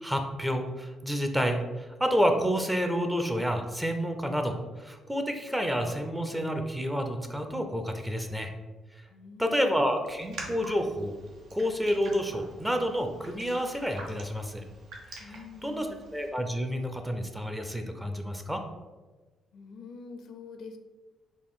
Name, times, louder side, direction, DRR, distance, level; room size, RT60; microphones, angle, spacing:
voice 1, 0.0-8.5 9.4-11.1 11.5-14.6 15.1-15.9 16.1-18.6, equal, 5° right, 5 dB, 0.5 m, -29 dB
voice 2, 9.1-10.0 15.2-16.0 19.5-20.8, left 4 dB, 70° left, 7 dB, 0.4 m, -45 dB
Raindrop, 10.1-16.3, right 2 dB, 75° right, 0.8 m, -46 dB
4.2 x 2.6 x 3.6 m, 1.2 s
cardioid pair, 90°, 0 cm